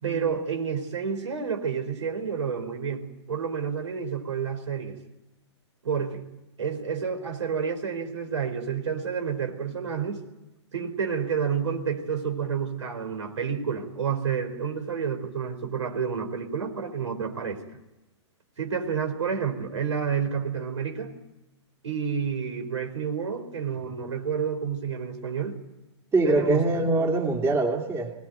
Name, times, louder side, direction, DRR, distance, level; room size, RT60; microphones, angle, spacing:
voice 1, 0.0-3.0 3.3-5.0 5.8-6.2 6.6-10.2 10.7-17.6 18.6-21.1 21.8-25.6 26.2-26.6, right 6 dB, 80° right, 7 dB, 4.3 m, -29 dB
voice 2, 26.1-28.1, right 2 dB, 15° right, 2 dB, 2.8 m, -23 dB
22.0 x 19.5 x 9.2 m, 0.96 s
hypercardioid pair, 125°, 15 cm